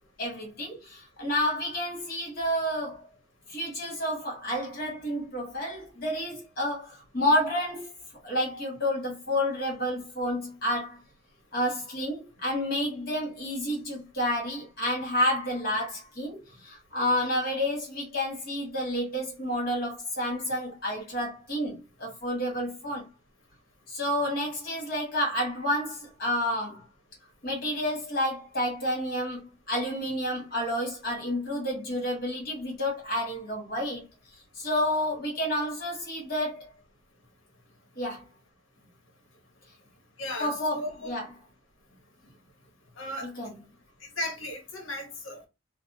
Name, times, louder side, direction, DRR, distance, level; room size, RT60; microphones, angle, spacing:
voice 1, 0.2-3.1 3.5-7.9 8.2-11.0 11.5-23.0 23.9-26.8 27.4-34.1 34.5-36.7 37.9-38.2 40.4-41.3 43.2-43.5, left 1 dB, 45° left, 1.4 m, -30 dB
voice 2, 40.2-41.1 43.0-43.3 44.1-45.5, left 1 dB, 65° left, 0.9 m, -35 dB
2.6 x 2.0 x 2.7 m
head